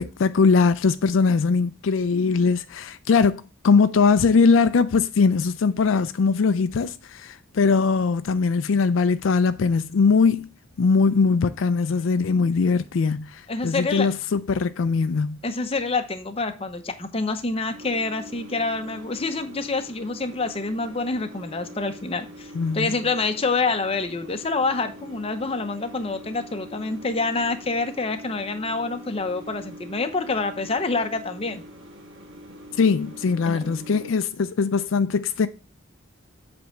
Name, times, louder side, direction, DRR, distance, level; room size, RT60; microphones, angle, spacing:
voice 1, 0.0-10.5 10.8-15.4 22.5-22.9 32.8-35.5, left 4 dB, 75° left, 0.4 m, -21 dB
voice 2, 13.5-14.1 15.4-31.6 33.5-33.7, left 3 dB, 30° left, 0.8 m, -27 dB
Microwave Clean, 17.7-34.1, equal, 60° right, 1.9 m, -43 dB
7.8 x 3.5 x 6.4 m
head